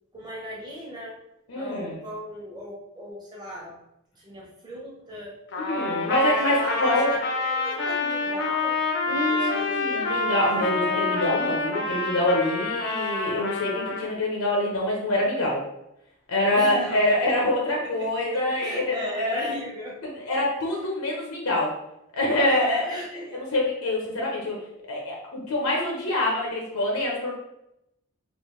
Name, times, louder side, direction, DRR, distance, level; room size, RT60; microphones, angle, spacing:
voice 1, 0.1-1.2 1.5-3.8 4.1-5.3 6.4-8.8 9.3-10.1 16.6-17.0 18.0-20.0 22.4-23.4, equal, 20° right, -4 dB, 0.8 m, -37 dB
voice 2, 1.5-2.0 5.6-7.1 9.1-15.6 16.3-19.6 20.0-21.7 22.1-22.8 23.3-24.6 24.9-27.3, left 1 dB, 90° left, -2 dB, 0.8 m, -25 dB
Trumpet, 5.5-14.0, left 3 dB, 55° left, 0.5 m, -27 dB
3.3 x 2.5 x 3.1 m, 0.84 s
head